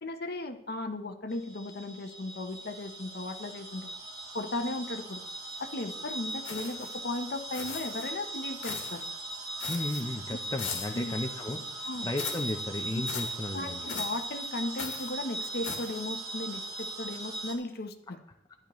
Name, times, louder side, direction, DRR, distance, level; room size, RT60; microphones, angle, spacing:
voice 1, 0.0-3.9 4.3-5.2 5.6-9.1 10.3-10.4 10.9-11.1 11.8-12.1 13.5-18.2, left 2 dB, 55° left, 7 dB, 0.8 m, -36 dB
sound 1, 1.3-17.5, right 1 dB, 20° right, 1.2 m, -39 dB
sound 2, 6.4-7.0 7.5-8.1 8.6-9.0 9.6-10.0 10.6-11.0 12.2-12.5 13.1-13.4 13.9-14.3 14.8-15.1 15.6-16.0, left 6 dB, 85° left, 1.5 m, -39 dB
voice 2, 9.7-13.9, left 1 dB, 20° left, 4 dB, 0.6 m, -35 dB
12.0 x 10.5 x 3.1 m, 0.81 s
head